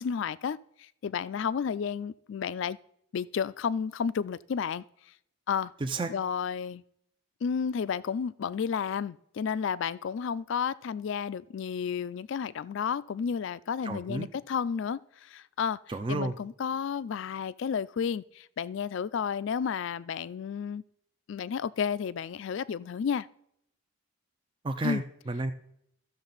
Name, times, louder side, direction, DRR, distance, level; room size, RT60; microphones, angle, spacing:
voice 1, 0.0-2.8 3.1-4.8 5.5-5.7 6.1-6.8 7.4-15.8 16.1-20.8 21.3-23.3 24.8-25.0, left 7 dB, 60° left, 0.3 m, -32 dB
voice 2, 13.8-14.3 15.9-16.3 24.6-25.5, right 2 dB, 25° right, 0.4 m, -31 dB
14.5 x 6.5 x 4.0 m
head